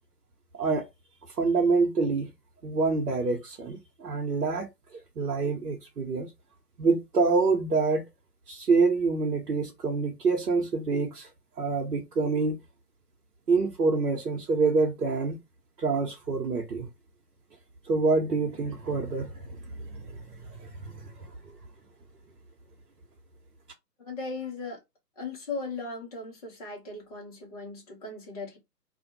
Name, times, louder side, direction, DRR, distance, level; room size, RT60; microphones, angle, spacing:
voice 1, 0.5-0.9 1.4-2.3 2.6-4.7 4.9-6.3 6.8-8.0 8.5-11.3 11.6-12.6 13.5-15.4 15.8-16.9 17.9-19.6 19.9-20.2 20.6-21.3, right 4 dB, 75° right, 1.0 m, -26 dB
voice 2, 24.0-24.8 25.2-28.6, left 3 dB, 25° left, 1.1 m, -37 dB
2.6 x 2.4 x 4.1 m
figure-of-eight pair, 145°, 48 cm